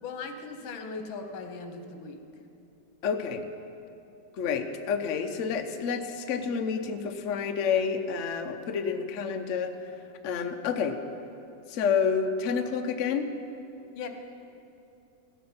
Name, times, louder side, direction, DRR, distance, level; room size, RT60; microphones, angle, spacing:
voice 1, 0.0-2.2 14.0-14.1, left 4 dB, 85° left, 6 dB, 1.7 m, -38 dB
voice 2, 3.0-3.4 4.4-9.8 10.2-11.0 11.7-13.3, left 6 dB, 60° left, 6 dB, 0.8 m, -29 dB
16.0 x 8.6 x 5.6 m, 2.7 s
omnidirectional pair, 2.1 m